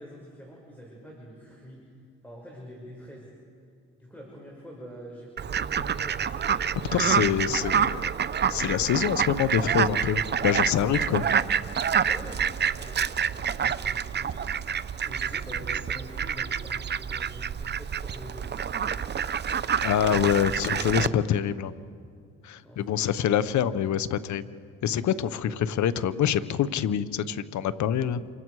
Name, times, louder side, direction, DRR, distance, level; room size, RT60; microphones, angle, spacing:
voice 1, 0.0-1.8 2.2-3.3 4.0-7.7 11.0-11.3 12.0-14.4 15.0-19.2 22.5-23.5 25.4-25.6, equal, 5° left, -2 dB, 5.6 m, -45 dB
Fowl, 5.4-21.1, right 7 dB, 35° right, 0.7 m, -28 dB
voice 2, 6.9-7.9 8.5-11.2 19.8-21.7 22.4-24.4 24.8-28.3, left 9 dB, 70° left, 15 dB, 0.9 m, -25 dB
28.5 x 24.5 x 4.8 m, 2.3 s
cardioid pair, 90°, 30 cm